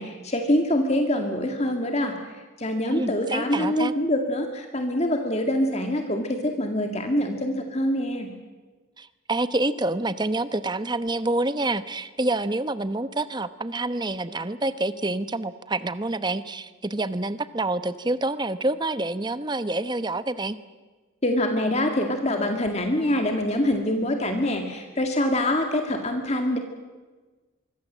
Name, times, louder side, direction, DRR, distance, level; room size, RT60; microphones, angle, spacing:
voice 1, 0.0-8.3 21.2-26.6, left 1 dB, 35° left, 4 dB, 2.1 m, -25 dB
voice 2, 2.9-3.9 9.0-20.6, right 2 dB, 20° right, 13 dB, 1.0 m, -27 dB
24.5 x 24.0 x 7.5 m, 1.3 s
head